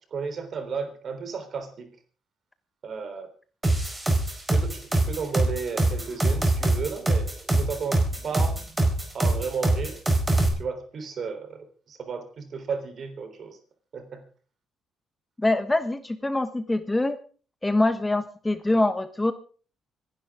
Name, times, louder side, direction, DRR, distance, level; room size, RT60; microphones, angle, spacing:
voice 1, 0.1-1.9 2.8-3.3 4.5-8.6 9.1-10.0 10.6-13.6 13.9-14.2, right 5 dB, 55° right, 8 dB, 3.6 m, -33 dB
sound 1, 3.6-10.5, right 2 dB, 15° right, 4.6 m, -23 dB
voice 2, 15.4-17.2 17.6-19.3, left 2 dB, 15° left, 11 dB, 1.2 m, -24 dB
25.5 x 11.5 x 3.7 m, 0.40 s
cardioid pair, 90°, 0 cm